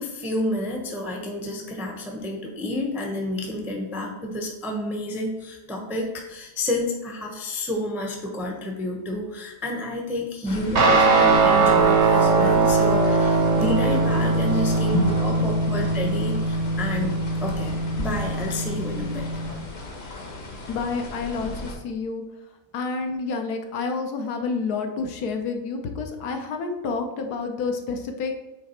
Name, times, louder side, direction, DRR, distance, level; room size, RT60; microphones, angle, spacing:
voice 1, 0.0-19.3, left 1 dB, ahead, 1 dB, 0.5 m, -30 dB
sound 1, 10.5-21.8, left 2 dB, 45° left, 1.1 m, -36 dB
Guitar, 10.8-19.5, right 3 dB, 85° right, 1.8 m, -21 dB
voice 2, 15.4-15.8 20.7-22.2 22.7-28.4, left 4 dB, 70° left, 5 dB, 1.2 m, -28 dB
8.4 x 3.2 x 4.3 m, 1.1 s
omnidirectional pair, 1.8 m